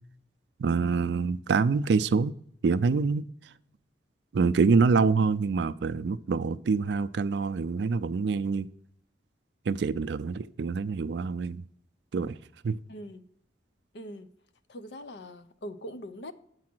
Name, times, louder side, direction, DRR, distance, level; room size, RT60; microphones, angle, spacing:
voice 1, 0.6-2.3 2.6-3.3 4.3-8.7 9.7-11.6 12.1-12.4 12.6-12.8, right 4 dB, 70° right, 0.4 m, -26 dB
voice 2, 12.9-13.2 13.9-14.3 14.7-16.3, equal, 70° left, 0.6 m, -42 dB
8.4 x 4.8 x 6.0 m
head